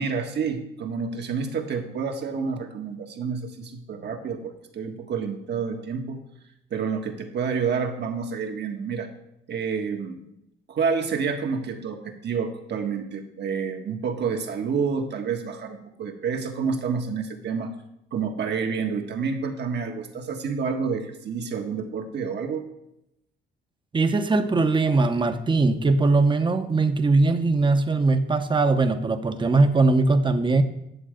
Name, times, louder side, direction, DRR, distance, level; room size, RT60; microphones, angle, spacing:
voice 1, 0.0-6.2 6.7-9.1 9.5-10.2 10.7-17.7 18.1-22.7, right 5 dB, 60° right, 4 dB, 1.5 m, -29 dB
voice 2, 23.9-30.6, right 3 dB, 25° right, 8 dB, 0.9 m, -20 dB
10.0 x 7.2 x 5.1 m, 0.82 s
cardioid pair, 90°, 20 cm